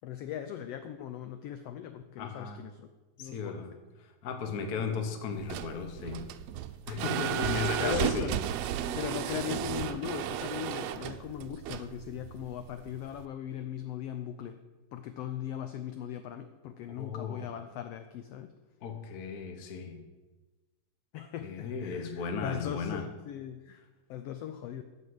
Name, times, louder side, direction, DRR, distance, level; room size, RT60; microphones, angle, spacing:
voice 1, 0.0-2.9 3.2-3.6 7.8-8.4 9.0-14.6 14.9-18.5 21.1-23.8 24.1-24.8, left 10 dB, 80° left, 9 dB, 1.4 m, -39 dB
voice 2, 2.2-2.6 3.2-3.7 4.0-6.3 6.9-8.3 17.0-17.5 18.8-20.0 21.4-23.0, left 5 dB, 55° left, 5 dB, 1.0 m, -35 dB
sound 1, 5.3-13.2, right 11 dB, 80° right, 1.5 m, -34 dB
14.0 x 5.4 x 7.8 m, 1.2 s
omnidirectional pair, 3.5 m